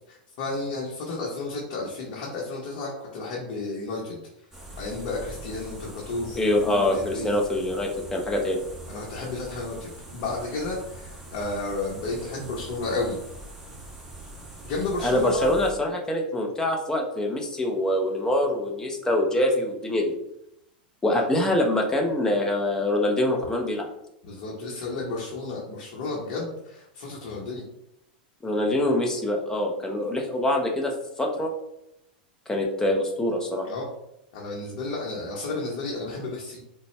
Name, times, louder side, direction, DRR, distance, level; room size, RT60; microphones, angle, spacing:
voice 1, 0.1-4.2 4.8-7.4 8.9-13.2 14.6-15.5 21.1-21.2 24.2-27.6 33.6-33.9 34.3-36.6, left 3 dB, 60° left, -4 dB, 0.9 m, -32 dB
sound 1, 4.5-15.7, right 2 dB, 5° right, 1.1 m, -42 dB
voice 2, 6.4-8.6 15.0-20.1 21.0-23.9 28.4-31.5 32.5-33.7, left 1 dB, 10° left, 1 dB, 0.7 m, -24 dB
3.9 x 2.2 x 3.2 m, 0.81 s
hypercardioid pair, 105°, 5 cm